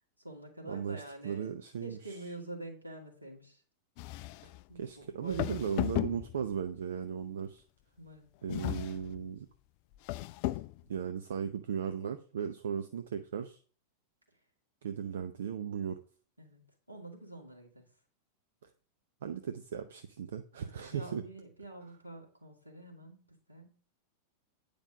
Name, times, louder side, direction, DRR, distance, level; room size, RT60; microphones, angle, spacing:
voice 1, 0.0-3.6 4.7-5.9 8.0-8.3 16.4-17.9 20.6-23.8, right 1 dB, 85° right, 0 dB, 2.4 m, -47 dB
voice 2, 0.6-2.2 4.4-7.6 8.4-9.5 10.9-13.6 14.8-16.0 19.2-21.2, right 7 dB, 60° right, 8 dB, 0.6 m, -37 dB
sound 1, 4.0-4.6 5.3-6.6 8.5-9.2 9.9-10.8, left 18 dB, 45° left, 0.3 m, -35 dB
9.2 x 5.2 x 5.2 m, 0.40 s
figure-of-eight pair, 90°, 0 cm